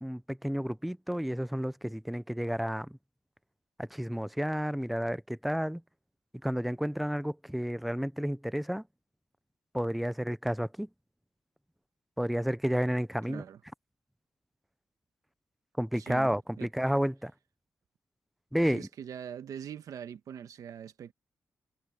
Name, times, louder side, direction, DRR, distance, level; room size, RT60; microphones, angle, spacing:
voice 1, 0.0-3.0 3.8-5.8 6.4-8.8 9.7-10.9 12.2-13.4 15.8-17.3 18.5-18.9, equal, ahead, 0.3 m, -31 dB
voice 2, 13.3-13.6 16.0-16.7 18.7-21.1, right 8 dB, 85° right, 1.0 m, -43 dB
wide cardioid pair, 180°, 6 cm